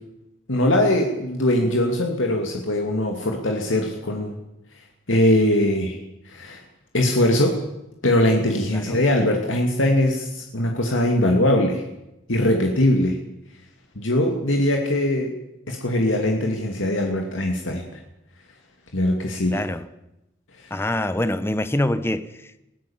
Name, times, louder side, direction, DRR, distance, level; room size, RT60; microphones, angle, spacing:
voice 1, 0.5-4.4 5.1-6.0 6.3-6.6 6.9-7.6 8.0-11.8 12.3-13.2 14.0-15.3 15.7-17.8 18.9-19.6, left 1 dB, 90° left, 2 dB, 2.6 m, -21 dB
voice 2, 8.7-9.0 19.5-19.8 20.7-22.6, left 1 dB, 10° left, 12 dB, 0.9 m, -25 dB
21.5 x 17.0 x 7.3 m, 0.92 s
head